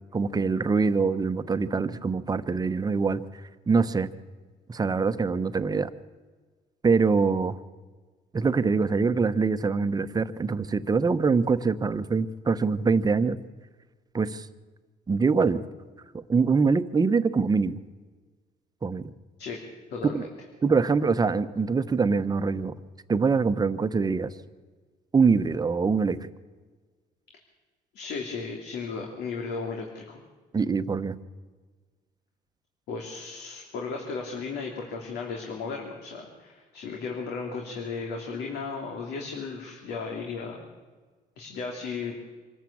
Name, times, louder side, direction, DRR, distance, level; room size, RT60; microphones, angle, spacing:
voice 1, 0.1-3.2 3.7-4.1 4.7-5.9 6.8-7.6 8.3-13.4 14.1-14.5 15.1-15.6 16.1-17.8 18.8-19.1 20.1-20.3 20.6-22.7 23.1-24.3 25.1-26.3 30.5-31.2, right 4 dB, 25° right, 12 dB, 1.0 m, -24 dB
voice 2, 19.9-20.3 27.9-30.2 32.9-40.6 41.4-42.1, left 4 dB, 80° left, 1 dB, 3.2 m, -35 dB
25.5 x 14.0 x 8.7 m, 1.4 s
cardioid pair, 110°, 17 cm